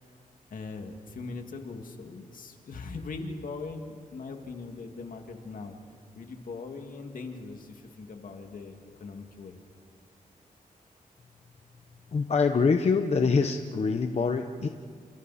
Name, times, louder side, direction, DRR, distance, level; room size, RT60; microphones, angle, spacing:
voice 1, 0.5-5.8 6.1-9.6, left 3 dB, 70° left, 4 dB, 2.3 m, -40 dB
voice 2, 12.1-14.7, left 5 dB, 45° left, 6 dB, 0.9 m, -25 dB
30.0 x 28.0 x 4.3 m, 2.1 s
wide cardioid pair, 110°, 15 cm